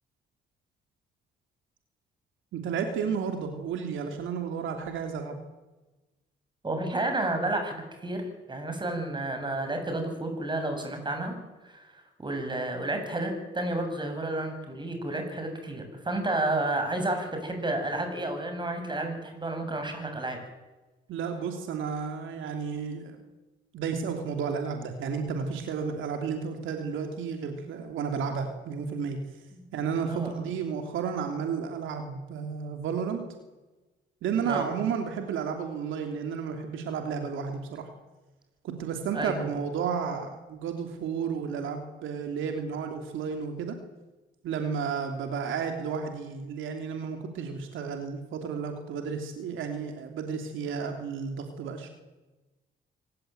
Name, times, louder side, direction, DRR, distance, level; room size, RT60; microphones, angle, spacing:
voice 1, 2.5-5.4 21.1-23.2 23.7-29.2 29.7-33.2 34.2-37.9 38.6-43.8 44.4-51.9, right 6 dB, 80° right, 5 dB, 3.1 m, -32 dB
voice 2, 6.6-8.2 8.5-11.3 11.6-11.8 12.2-20.4 29.5-29.6 30.0-30.3 34.4-34.7 39.1-39.4, right 2 dB, 25° right, 5 dB, 7.8 m, -31 dB
26.0 x 16.0 x 9.4 m, 1.1 s
cardioid pair, 90°, 20 cm